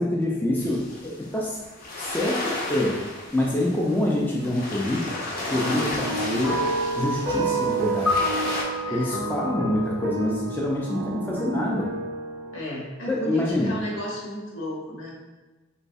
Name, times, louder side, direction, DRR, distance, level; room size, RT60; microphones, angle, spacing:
voice 1, 0.0-1.6 2.0-3.1 3.3-6.6 7.0-8.1 8.9-11.9 13.1-13.7, left 1 dB, 10° left, -3 dB, 0.3 m, -26 dB
sound 1, 0.6-8.6, left 2 dB, 45° left, 0.7 m, -34 dB
sound 2, 5.4-12.6, right 1 dB, 60° right, 0.4 m, -33 dB
sound 3, 6.4-10.8, right 1 dB, 5° right, 0.8 m, -28 dB
voice 2, 8.8-9.2 12.5-15.2, equal, 75° left, -4 dB, 1.0 m, -33 dB
3.1 x 3.1 x 2.6 m, 1.2 s
head